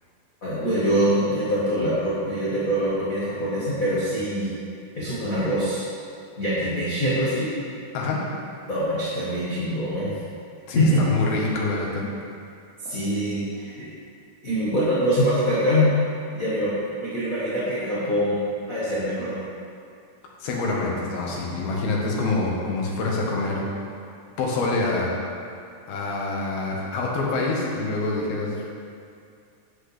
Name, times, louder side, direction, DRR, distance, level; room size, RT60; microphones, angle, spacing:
voice 1, 0.4-4.5 4.9-5.8 6.4-7.5 8.7-10.2 10.7-11.0 12.8-13.9 14.4-15.9 16.3-16.7 17.0-18.4 18.7-19.4, equal, 45° left, -11 dB, 1.1 m, -24 dB
voice 2, 10.7-12.0 20.4-23.6 24.4-25.1 25.9-28.6, left 3 dB, 90° left, -3 dB, 3.1 m, -26 dB
9.9 x 8.0 x 3.3 m, 2.4 s
omnidirectional pair, 4.2 m